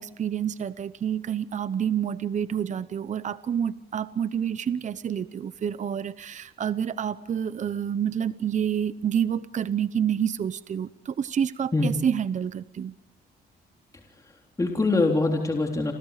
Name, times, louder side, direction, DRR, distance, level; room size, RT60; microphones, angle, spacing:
voice 1, 0.0-13.0, right 8 dB, 45° right, 14 dB, 0.9 m, -28 dB
voice 2, 14.2-15.9, left 3 dB, 20° left, 1 dB, 3.6 m, -24 dB
29.0 x 28.0 x 5.0 m, 0.77 s
cardioid pair, 105°, 17 cm